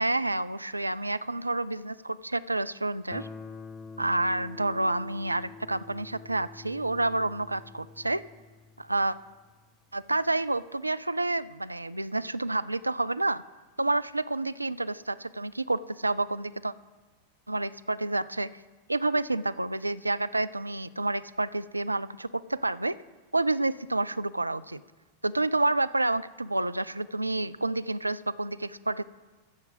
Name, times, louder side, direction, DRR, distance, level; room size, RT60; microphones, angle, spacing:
voice 1, 0.0-3.3 4.0-8.2 8.8-9.2 9.9-13.4 13.8-16.7 17.5-18.5 18.9-23.0 23.3-24.8 25.2-29.0, right 2 dB, 85° right, 14 dB, 0.3 m, -29 dB
Guitar, 3.1-9.8, left 4 dB, 20° left, 0.5 m, -47 dB
14.0 x 5.9 x 7.8 m, 1.3 s
figure-of-eight pair, 90°, 0 cm